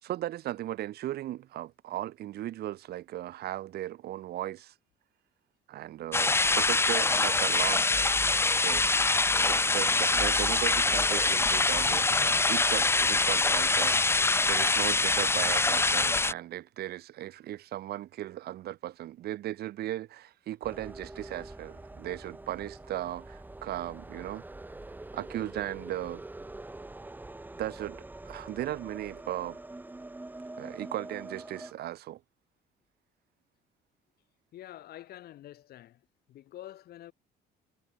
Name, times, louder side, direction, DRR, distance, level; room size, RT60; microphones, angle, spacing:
voice 1, 0.0-4.7 5.7-7.9 8.5-9.1 9.4-24.4 25.1-26.3 27.6-29.6 30.6-32.2, right 13 dB, 70° right, 5.2 m, -37 dB
sound 1, 6.1-16.3, left 3 dB, 15° left, 1.0 m, -24 dB
sound 2, 20.6-31.7, right 2 dB, 10° right, 2.3 m, -45 dB
voice 2, 34.5-36.0 36.3-37.1, left 13 dB, 70° left, 4.2 m, -47 dB
cardioid pair, 110°, 17 cm